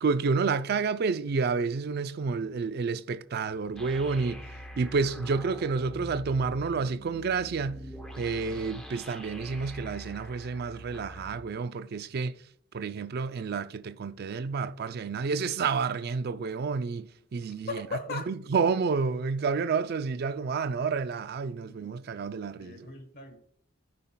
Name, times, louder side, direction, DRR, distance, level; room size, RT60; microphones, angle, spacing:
voice 1, 0.0-4.4 4.8-7.8 8.2-12.4 12.7-17.9 18.1-22.9, right 5 dB, 50° right, 0.4 m, -30 dB
sound 1, 3.8-11.4, equal, 5° left, 0.7 m, -44 dB
voice 2, 17.7-18.3 22.6-23.4, left 4 dB, 45° left, 1.2 m, -37 dB
14.0 x 5.4 x 2.2 m
head